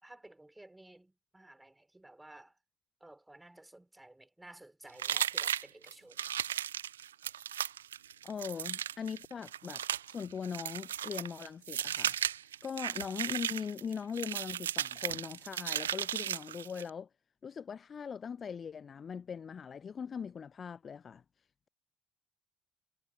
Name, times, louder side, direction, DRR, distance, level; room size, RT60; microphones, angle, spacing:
voice 1, 0.0-2.6 3.0-6.4, right 1 dB, 10° right, 4.2 m, -55 dB
sound 1, 5.0-16.9, right 10 dB, 80° right, 0.3 m, -36 dB
voice 2, 8.2-12.2 12.6-17.1 17.4-21.2, left 6 dB, 40° left, 0.7 m, -40 dB
figure-of-eight pair, 50°, 0 cm